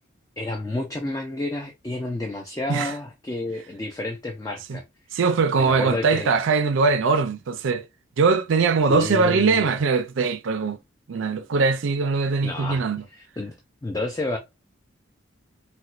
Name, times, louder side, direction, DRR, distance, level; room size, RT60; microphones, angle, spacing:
voice 1, 0.4-4.8 5.6-6.3 8.9-9.7 12.4-12.8 13.1-13.6 13.8-14.4, left 2 dB, 15° left, 0.3 m, -30 dB
voice 2, 5.1-7.8 8.2-10.8 11.1-13.0, right 4 dB, 75° right, 0.4 m, -21 dB
4.2 x 2.2 x 2.4 m
head